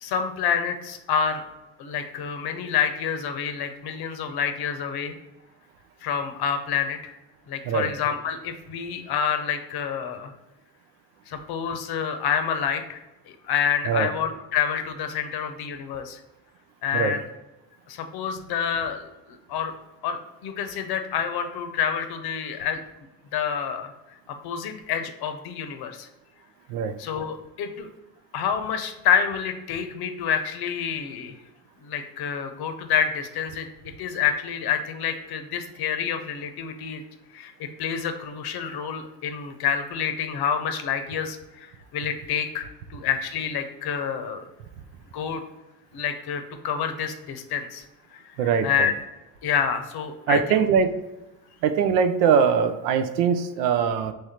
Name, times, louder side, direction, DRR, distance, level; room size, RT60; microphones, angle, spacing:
voice 1, 0.0-1.4 1.8-5.2 6.0-7.2 7.5-10.3 11.3-13.0 13.3-16.2 16.8-17.2 17.9-19.7 20.0-22.8 23.3-23.9 24.4-26.1 27.0-27.9 28.3-31.3 31.8-33.7 34.0-37.0 37.3-44.5 45.1-45.4 45.9-47.8 48.1-48.2 48.6-48.9 49.4-50.6, left 7 dB, 50° left, 7 dB, 0.7 m, -28 dB
voice 2, 48.4-48.9 50.3-50.9 51.6-54.1, right 6 dB, 70° right, 9 dB, 0.6 m, -22 dB
3.5 x 3.2 x 4.2 m, 1.0 s
hypercardioid pair, 60°, 49 cm